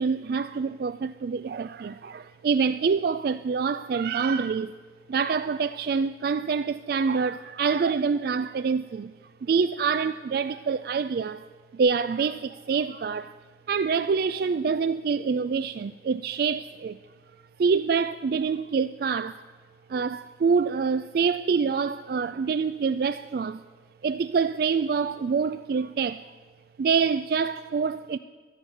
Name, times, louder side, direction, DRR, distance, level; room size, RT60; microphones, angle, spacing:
voice 1, 0.0-4.7 5.1-9.1 9.4-11.5 11.7-13.3 13.7-17.0 17.6-19.4 19.9-23.6 24.0-26.2 26.8-28.2, right 5 dB, 55° right, 0.3 m, -26 dB
13.0 x 9.8 x 7.7 m
head